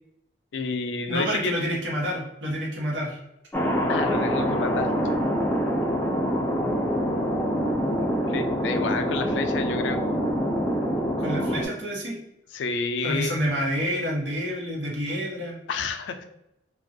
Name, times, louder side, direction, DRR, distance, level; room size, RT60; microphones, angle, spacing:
voice 1, 0.5-1.6 3.9-4.9 7.9-10.0 12.5-13.3 15.7-16.2, left 4 dB, 90° left, 7 dB, 0.4 m, -30 dB
voice 2, 1.1-3.2 11.2-12.2 13.0-15.6, equal, 85° right, -2 dB, 0.9 m, -28 dB
Thunder, 3.5-11.7, equal, 10° left, 0.3 m, -25 dB
2.4 x 2.2 x 2.6 m, 0.83 s
head